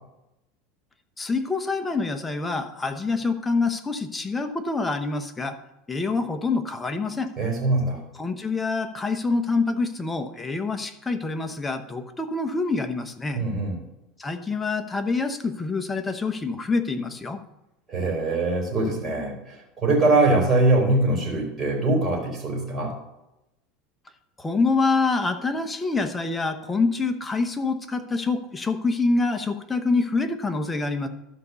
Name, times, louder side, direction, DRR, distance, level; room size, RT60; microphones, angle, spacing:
voice 1, 1.2-5.6 5.9-7.3 8.1-13.4 14.2-17.4 24.4-31.1, left 3 dB, 10° left, 7 dB, 1.0 m, -26 dB
voice 2, 7.4-8.0 13.3-13.8 17.9-22.9, right 2 dB, 20° right, -1 dB, 4.3 m, -22 dB
12.5 x 5.3 x 6.9 m, 0.90 s
supercardioid pair, 140°, 0 cm